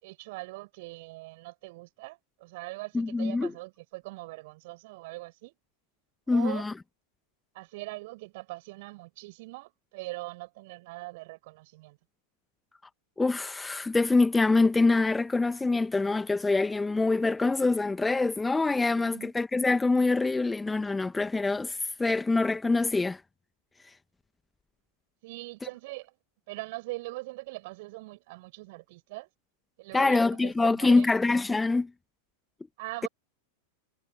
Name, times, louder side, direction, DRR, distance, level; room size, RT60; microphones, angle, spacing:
voice 1, 0.0-5.5 6.3-6.7 7.5-12.0 18.9-19.3 25.2-26.1 26.5-29.3 29.8-31.1 32.8-33.1, right 22 dB, 50° right, 7.4 m, -41 dB
voice 2, 2.9-3.5 6.3-6.7 13.2-23.2 29.9-31.9, left 3 dB, 10° left, 1.6 m, -25 dB
figure-of-eight pair, 90°, 0 cm